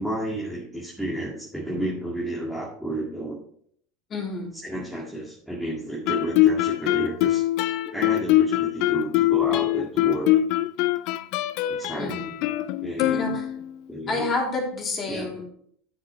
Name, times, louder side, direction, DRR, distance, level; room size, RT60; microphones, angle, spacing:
voice 1, 0.0-3.4 4.6-7.4 7.9-10.3 11.7-12.2 12.8-13.4 13.9-14.3 15.1-15.3, right 1 dB, ahead, -5 dB, 1.9 m, -31 dB
voice 2, 4.1-4.5 5.0-5.2 12.0-12.3 13.1-13.4 14.1-15.4, left 3 dB, 30° left, 0 dB, 3.0 m, -29 dB
Guitar, 6.1-13.8, left 14 dB, 55° left, 0.5 m, -23 dB
12.0 x 7.2 x 3.2 m, 0.62 s
figure-of-eight pair, 80°, 0 cm